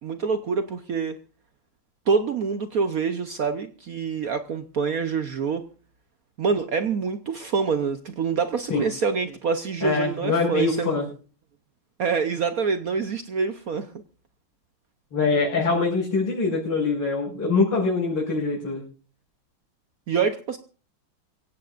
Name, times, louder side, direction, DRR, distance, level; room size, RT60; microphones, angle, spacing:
voice 1, 0.0-1.2 2.1-5.6 6.4-11.0 12.0-13.9 20.1-20.6, right 5 dB, 60° right, 9 dB, 1.0 m, -26 dB
voice 2, 9.8-11.0 15.1-18.8, left 4 dB, 80° left, -7 dB, 6.5 m, -23 dB
25.5 x 16.0 x 2.5 m, 0.38 s
omnidirectional pair, 2.3 m